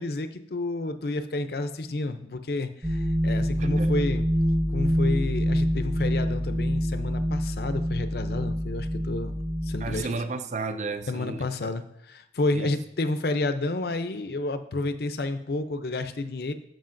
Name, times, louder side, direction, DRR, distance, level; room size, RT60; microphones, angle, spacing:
voice 1, 0.0-4.3 4.7-9.3 9.6-10.1 11.1-16.5, left 2 dB, 60° left, 0.5 m, -30 dB
sound 1, 2.8-10.0, equal, 25° right, 1.4 m, -26 dB
voice 2, 3.6-3.9 9.8-11.5 12.5-12.7, right 4 dB, 40° right, 0.4 m, -33 dB
13.0 x 5.0 x 2.6 m
head